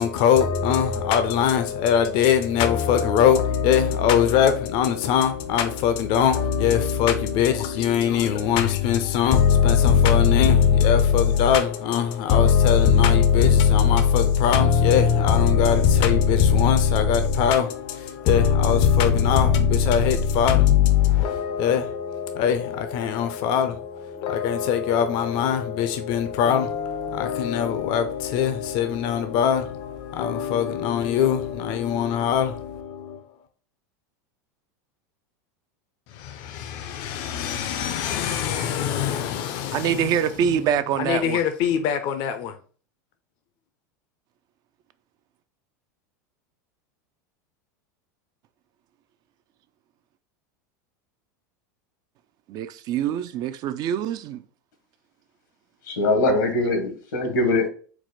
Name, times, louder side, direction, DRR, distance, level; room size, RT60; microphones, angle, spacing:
voice 1, 0.0-33.2 36.1-40.1 41.0-42.5, left 8 dB, 55° left, 0.5 m, -21 dB
voice 2, 39.7-41.4 52.5-54.4, right 9 dB, 45° right, 0.3 m, -25 dB
voice 3, 55.9-57.7, left 2 dB, 90° left, 1.2 m, -22 dB
4.6 x 2.1 x 4.0 m
supercardioid pair, 110°, 10 cm